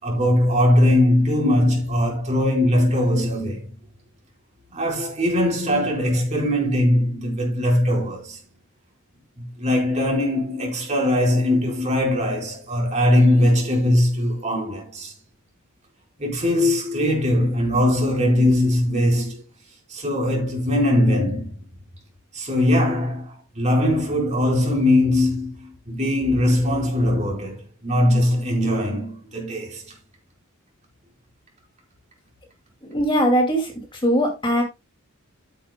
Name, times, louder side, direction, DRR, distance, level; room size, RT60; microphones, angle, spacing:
voice 1, 0.0-3.7 4.7-8.4 9.4-15.1 16.2-19.4 19.9-21.6 22.3-29.9, left 1 dB, 35° right, 4.5 m, -20 dB
voice 2, 32.8-34.6, equal, 25° left, 2.4 m, -21 dB
13.0 x 9.2 x 2.2 m
head